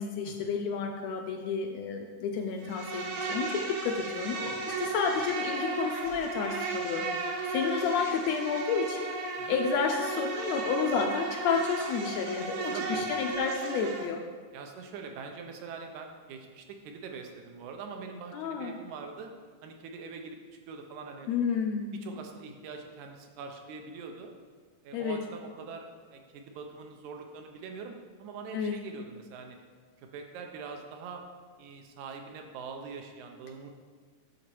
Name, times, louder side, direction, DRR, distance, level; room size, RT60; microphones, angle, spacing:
voice 1, 0.0-4.5 4.8-9.1 9.5-14.2 18.3-18.7 21.3-22.0 24.9-25.2 28.5-28.8, left 5 dB, 80° left, 3 dB, 1.6 m, -31 dB
Insect, 2.6-14.1, right 3 dB, 65° right, 1.5 m, -35 dB
voice 2, 4.4-4.7 5.2-5.3 9.4-9.6 12.4-13.1 14.5-19.3 19.6-21.3 21.9-24.3 24.8-29.6 30.0-31.2 31.6-33.7, right 5 dB, 80° right, 3 dB, 2.2 m, -43 dB
8.0 x 4.1 x 6.2 m, 1.6 s
omnidirectional pair, 3.4 m